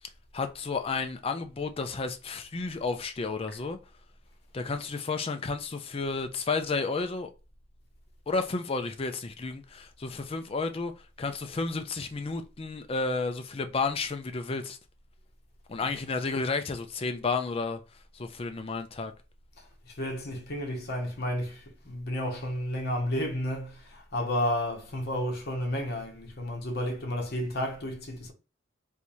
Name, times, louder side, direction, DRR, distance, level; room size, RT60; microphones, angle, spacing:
voice 1, 0.3-3.8 4.5-7.3 8.3-10.9 11.2-14.8 15.7-17.8 18.1-19.1, left 4 dB, 30° left, 0.4 m, -32 dB
voice 2, 19.9-28.3, left 1 dB, 55° left, 1.0 m, -32 dB
3.4 x 2.7 x 3.0 m
head